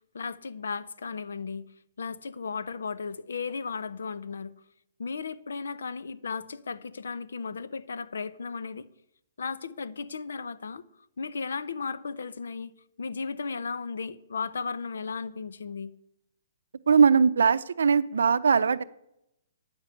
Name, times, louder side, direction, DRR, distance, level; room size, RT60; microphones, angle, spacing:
voice 1, 0.1-1.7 2.0-4.5 5.0-8.9 9.4-10.8 11.2-12.7 13.0-15.9, left 5 dB, 80° left, 0.6 m, -35 dB
voice 2, 16.9-18.8, right 6 dB, 80° right, 0.5 m, -20 dB
8.8 x 6.7 x 8.4 m
hypercardioid pair, 140°, 0 cm